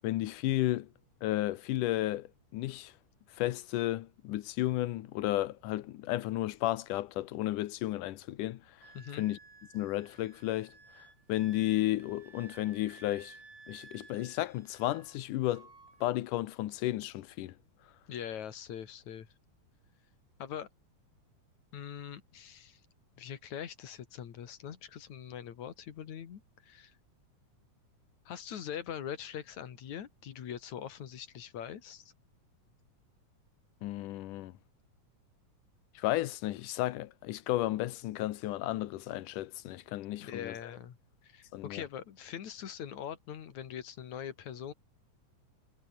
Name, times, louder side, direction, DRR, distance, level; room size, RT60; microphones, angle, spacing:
voice 1, 0.0-0.9 1.2-2.9 3.3-8.9 9.2-9.4 9.7-13.4 13.7-15.7 16.0-17.5 33.8-34.5 36.0-40.6 41.5-41.8, left 15 dB, 80° left, 2.5 m, -33 dB
Wind instrument woodwind instrument, 8.8-15.2 15.5-16.1, right 4 dB, 60° right, 7.9 m, -56 dB
voice 2, 8.9-9.2 18.1-19.3 20.4-20.7 21.7-22.8 23.2-26.9 28.3-32.1 40.2-41.0 41.2-44.7, left 9 dB, 65° left, 3.3 m, -42 dB
omnidirectional pair, 3.7 m